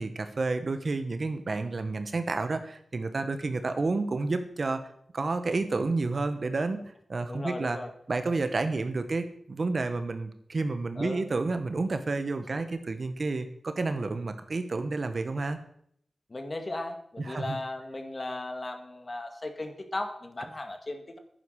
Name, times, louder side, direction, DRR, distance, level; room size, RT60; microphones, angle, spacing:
voice 1, 0.0-4.8 5.1-6.8 7.1-7.8 8.1-15.6 17.2-17.6, right 3 dB, 55° right, 9 dB, 1.4 m, -30 dB
voice 2, 7.3-7.9 11.0-11.2 16.3-21.2, left 2 dB, 35° left, 6 dB, 2.0 m, -36 dB
11.0 x 9.6 x 6.5 m, 0.67 s
wide cardioid pair, 70°, 0 cm